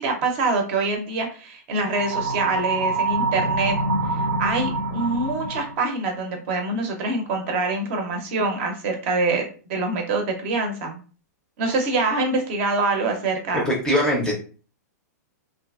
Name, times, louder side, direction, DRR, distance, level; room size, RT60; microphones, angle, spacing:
voice 1, 0.0-3.8 4.1-9.4 9.7-11.0 11.6-13.6, right 3 dB, 45° right, 4 dB, 0.6 m, -25 dB
sound 1, 1.9-5.8, right 3 dB, 80° right, 0.6 m, -25 dB
voice 2, 13.5-14.3, equal, 5° left, -1 dB, 0.5 m, -21 dB
2.6 x 2.4 x 2.3 m, 0.38 s
hypercardioid pair, 155°, 9 cm